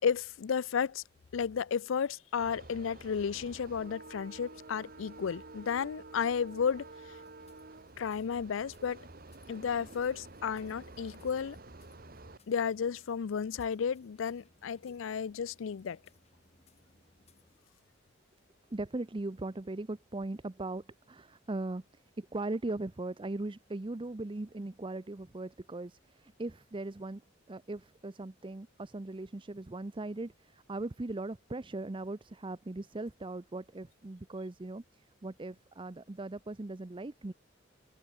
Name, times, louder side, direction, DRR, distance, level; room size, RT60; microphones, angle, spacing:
voice 1, 0.0-1.0 1.3-6.9 8.0-9.1 9.5-11.6 12.5-16.0, left 6 dB, 85° left, 0.4 m, -33 dB
sound 1, 2.4-12.4, right 2 dB, 50° right, 2.3 m, -50 dB
sound 2, 7.0-17.6, left 2 dB, 35° left, 4.0 m, -66 dB
voice 2, 18.7-27.2 27.5-37.3, right 2 dB, 25° right, 0.6 m, -39 dB
head